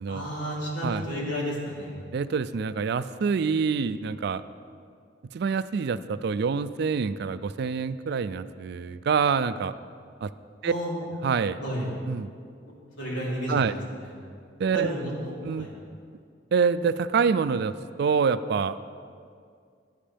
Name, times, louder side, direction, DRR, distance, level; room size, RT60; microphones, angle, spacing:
voice 1, 0.1-2.0 10.6-11.0 11.6-11.9 13.0-14.1 14.7-15.7, equal, 85° left, -5 dB, 3.3 m, -32 dB
voice 2, 2.1-4.4 5.3-9.7 10.2-10.3 10.6-10.7 11.2-11.6 12.1-12.3 13.5-13.7 14.6-14.9 15.4-15.7 16.5-17.7 18.0-18.8, right 5 dB, 65° right, 14 dB, 0.4 m, -26 dB
15.5 x 10.0 x 3.4 m, 2.2 s
head